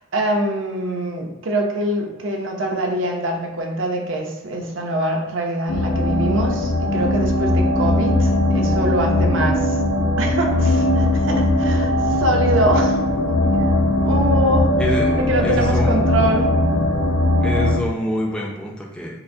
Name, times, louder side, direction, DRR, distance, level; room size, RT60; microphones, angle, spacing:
voice 1, 0.0-9.8 10.2-13.0 13.3-14.7 15.2-16.5, right 1 dB, 65° right, 2 dB, 0.6 m, -24 dB
sound 1, 5.7-17.8, left 1 dB, 85° left, 0.4 m, -19 dB
voice 2, 14.8-16.3 17.4-19.2, equal, 5° left, -2 dB, 0.5 m, -26 dB
5.7 x 2.1 x 2.6 m, 1.1 s
head